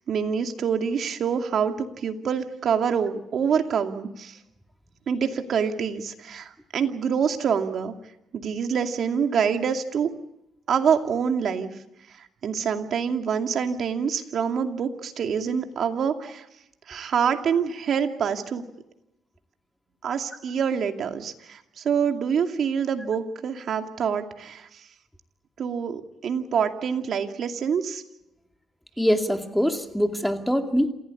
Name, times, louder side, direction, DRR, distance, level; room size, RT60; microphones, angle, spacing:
voice 1, 0.1-4.4 5.1-7.9 8.3-10.1 10.7-11.7 12.4-16.4 16.9-18.6 20.0-24.7 25.6-28.0, right 7 dB, 60° right, 5 dB, 2.4 m, -26 dB
voice 2, 29.0-30.9, equal, ahead, 5 dB, 2.4 m, -23 dB
28.0 x 16.0 x 8.5 m, 0.87 s
cardioid pair, 90°, 0 cm